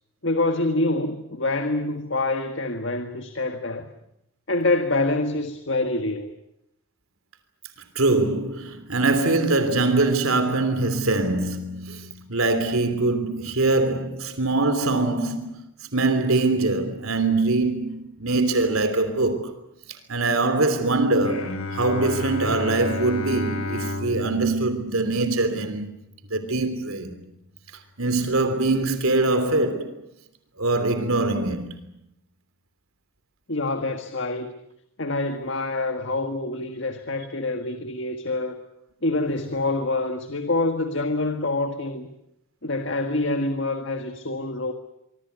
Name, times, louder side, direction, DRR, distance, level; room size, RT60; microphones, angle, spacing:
voice 1, 0.2-3.9 4.5-6.3 33.5-34.5 35.0-38.6 39.0-42.1 42.6-44.7, left 2 dB, 60° left, 1.8 m, -26 dB
voice 2, 7.9-15.6 15.9-19.5 20.1-25.9 26.3-27.1 28.0-30.0 30.6-31.7, right 2 dB, 80° right, 3.2 m, -23 dB
Bowed string instrument, 21.2-26.5, left 2 dB, 80° left, 2.7 m, -33 dB
25.5 x 24.0 x 8.2 m
head